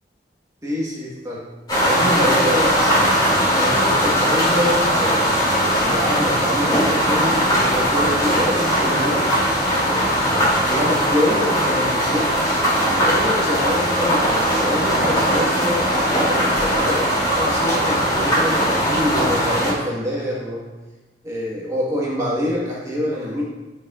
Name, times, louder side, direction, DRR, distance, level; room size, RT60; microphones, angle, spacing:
voice 1, 0.6-1.5 1.9-3.2 3.5-10.2 10.6-12.3 12.9-20.7 21.2-23.4, equal, 15° right, -5 dB, 1.3 m, -25 dB
sound 1, 1.7-19.7, equal, 25° left, 2.5 m, -19 dB
12.5 x 5.4 x 2.4 m, 1.2 s
head